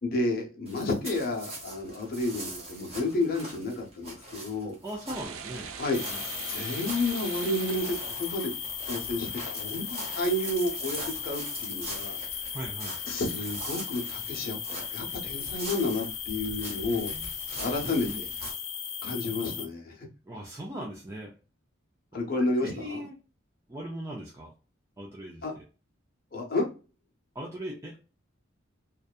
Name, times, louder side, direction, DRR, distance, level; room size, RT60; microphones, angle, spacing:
voice 1, 0.0-4.8 5.8-6.0 6.5-8.5 8.9-12.2 13.1-17.1 17.6-18.3 19.0-20.1 22.1-23.0 25.4-25.5 26.3-26.7, left 2 dB, 45° left, 1 dB, 0.7 m, -31 dB
sound 1, 0.7-18.5, right 2 dB, 30° right, 0.9 m, -43 dB
voice 2, 4.8-5.7 6.1-6.2 12.5-13.0 17.1-17.2 18.1-18.2 20.3-21.3 22.6-23.1 23.7-24.5 25.0-25.4 27.3-28.0, right 1 dB, 15° right, -3 dB, 0.4 m, -38 dB
sound 2, 5.1-8.7, right 7 dB, 80° right, 0.4 m, -41 dB
sound 3, 5.9-19.7, left 7 dB, 80° left, 0.5 m, -36 dB
2.6 x 2.2 x 2.3 m, 0.32 s
head